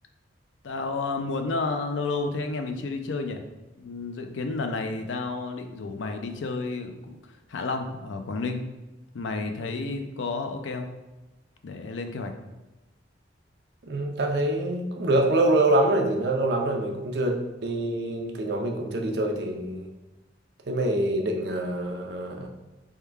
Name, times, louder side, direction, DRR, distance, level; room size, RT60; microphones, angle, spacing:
voice 1, 0.6-3.4 3.8-7.2 7.5-8.7 9.1-10.9 11.6-12.3, left 3 dB, 90° left, 6 dB, 0.5 m, -31 dB
voice 2, 13.8-19.9 20.7-22.5, right 1 dB, 65° right, 2 dB, 0.5 m, -25 dB
3.6 x 2.2 x 4.4 m, 1.1 s
head